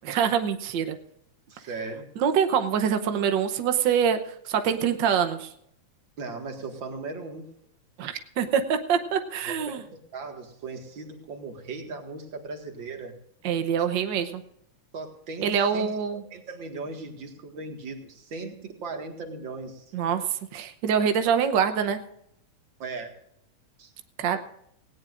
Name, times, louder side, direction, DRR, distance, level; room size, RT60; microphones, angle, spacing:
voice 1, 0.0-1.0 2.2-5.5 8.0-9.8 13.4-14.4 15.4-16.2 19.9-20.2 20.5-22.0 24.2-24.4, right 7 dB, 85° right, 8 dB, 1.0 m, -25 dB
voice 2, 1.5-2.1 6.2-7.5 9.4-9.8 10.1-13.1 14.9-15.9 16.3-19.9 22.8-23.1 23.8-23.9, right 4 dB, 45° right, 4 dB, 2.3 m, -37 dB
18.5 x 17.0 x 2.5 m, 0.74 s
omnidirectional pair, 3.4 m